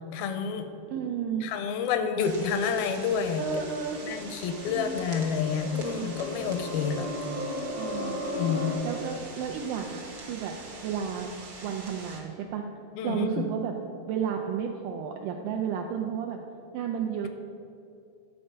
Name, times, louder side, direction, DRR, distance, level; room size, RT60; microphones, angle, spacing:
voice 1, 0.1-0.7 1.4-3.4 4.0-7.1 8.3-8.8 13.0-13.5, left 6 dB, 85° left, 7 dB, 2.4 m, -29 dB
voice 2, 0.9-1.5 3.4-4.0 4.7-5.0 5.7-6.1 7.7-8.2 8.8-10.6 10.8-11.3 11.6-12.6 13.0-13.7 14.1-16.4 16.7-17.3, right 8 dB, 85° right, 3 dB, 1.9 m, -32 dB
sound 1, 2.2-12.2, right 3 dB, 65° right, 1.1 m, -44 dB
sound 2, 3.7-8.7, left 1 dB, 45° left, 0.7 m, -36 dB
9.8 x 4.3 x 6.6 m, 2.6 s
omnidirectional pair, 4.2 m